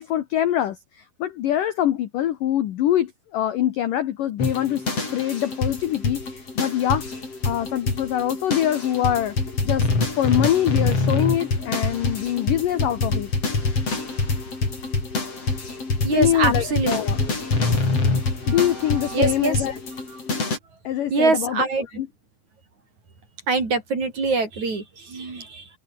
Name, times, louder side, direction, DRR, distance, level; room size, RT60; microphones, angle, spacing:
voice 1, 0.0-4.8 5.1-7.0 7.4-9.4 9.6-9.9 10.2-13.3 16.1-17.2 18.5-19.8 20.8-21.6 22.0-22.1, left 11 dB, 70° left, 2.1 m, -24 dB
sound 1, 4.4-20.6, left 3 dB, 30° left, 7.0 m, -25 dB
voice 2, 16.0-17.3 18.4-19.7 20.1-20.2 21.1-21.9 23.5-25.7, right 4 dB, 35° right, 6.4 m, -24 dB
omnidirectional pair, 5.6 m